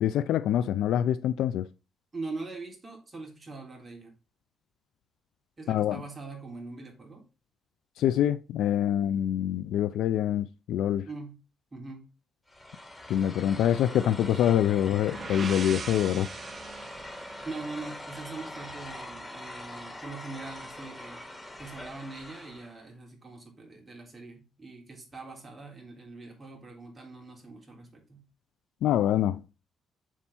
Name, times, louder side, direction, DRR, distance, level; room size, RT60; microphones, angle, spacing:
voice 1, 0.0-1.7 5.7-6.0 8.0-11.1 13.1-16.3 28.8-29.6, left 11 dB, 80° left, 0.4 m, -25 dB
voice 2, 2.1-4.1 5.6-7.3 11.1-11.4 11.7-12.1 17.4-21.2 21.6-28.2, right 3 dB, 25° right, 3.4 m, -42 dB
sound 1, 12.5-22.8, left 1 dB, 15° left, 3.3 m, -43 dB
sound 2, 14.7-18.5, right 5 dB, 40° right, 0.9 m, -42 dB
7.3 x 4.5 x 6.0 m
cardioid pair, 90°, 0 cm